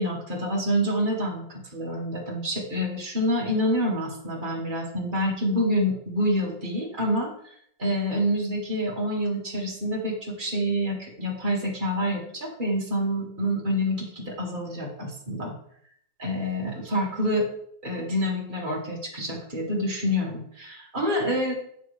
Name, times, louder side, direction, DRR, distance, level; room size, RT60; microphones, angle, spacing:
voice 1, 0.0-7.3 7.8-15.5 16.2-17.5 17.8-21.5, equal, 25° right, -4 dB, 2.0 m, -27 dB
8.3 x 6.8 x 3.3 m, 0.67 s
omnidirectional pair, 2.2 m